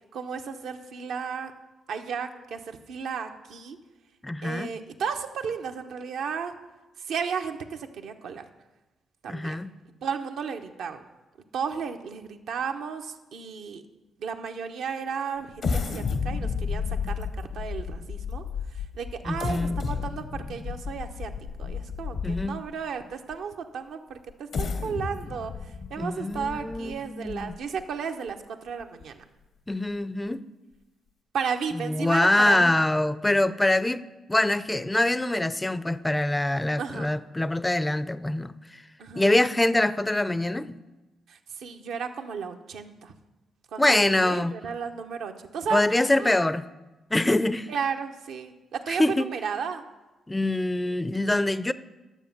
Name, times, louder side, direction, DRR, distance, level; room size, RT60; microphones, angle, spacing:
voice 1, 0.1-1.5 1.9-3.8 4.4-6.5 7.0-8.4 9.2-9.6 10.0-11.0 11.5-13.8 14.2-18.4 18.7-21.3 21.6-29.2 31.3-32.7 36.8-37.1 39.0-39.5 41.3-43.1 43.7-45.9 46.2-46.5 47.7-49.8, right 6 dB, 70° right, 0.7 m, -34 dB
voice 2, 4.2-4.7 9.3-9.7 19.3-19.8 22.2-22.6 26.0-27.5 29.7-30.4 31.8-34.0 34.3-38.5 39.2-40.8 43.8-44.5 45.7-46.6 47.1-47.7 48.9-49.2 50.3-51.7, left 1 dB, 15° left, 0.5 m, -24 dB
sound 1, 15.6-22.7 23.3-23.4 24.3-27.8 28.3-28.4 28.8-29.0, left 5 dB, 60° left, 0.8 m, -32 dB
9.9 x 7.0 x 5.9 m
hypercardioid pair, 45°, 0 cm